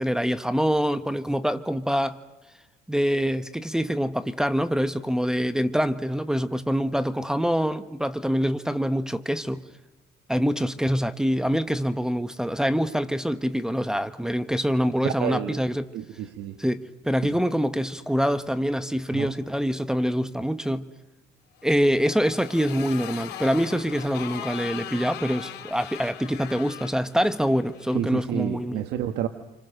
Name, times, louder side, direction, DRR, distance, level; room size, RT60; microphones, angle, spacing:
voice 1, 0.0-2.2 2.9-9.6 10.3-15.9 16.6-20.9 21.6-28.8, equal, 5° right, 1.1 m, -25 dB
voice 2, 15.0-15.6 15.9-16.6 19.1-19.3 27.9-29.3, right 11 dB, 80° right, 1.6 m, -30 dB
Motorcycle, 21.6-28.0, left 11 dB, 80° left, 4.2 m, -39 dB
28.0 x 26.5 x 6.6 m
cardioid pair, 110°, 17 cm